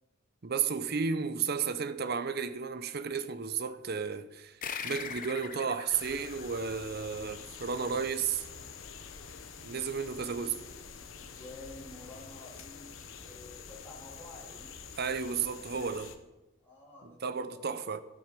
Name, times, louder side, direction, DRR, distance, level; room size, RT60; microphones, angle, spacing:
voice 1, 0.4-4.6 4.8-8.4 9.6-10.6 15.0-16.1 17.2-18.0, right 6 dB, 50° right, 0.7 m, -33 dB
sound 1, 4.6-7.6, left 6 dB, 40° left, 0.9 m, -42 dB
sound 2, 5.9-16.2, left 6 dB, 80° left, 1.0 m, -47 dB
voice 2, 10.2-10.6 10.9-11.0 11.3-14.7 16.6-17.7, left 2 dB, 10° left, 2.7 m, -50 dB
12.5 x 8.9 x 5.2 m
head